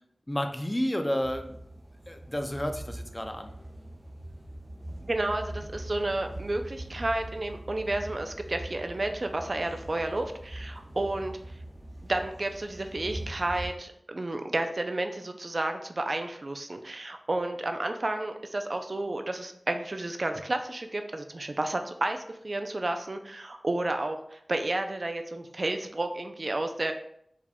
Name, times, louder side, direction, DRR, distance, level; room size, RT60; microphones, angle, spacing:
voice 1, 0.3-1.6 2.1-3.5, equal, 25° left, 6 dB, 0.5 m, -31 dB
sound 1, 1.2-13.7, right 1 dB, 35° right, 0.7 m, -42 dB
voice 2, 5.0-11.4 12.1-26.9, right 2 dB, 60° right, 6 dB, 0.4 m, -31 dB
4.7 x 3.4 x 2.2 m, 0.70 s
wide cardioid pair, 50°, 0 cm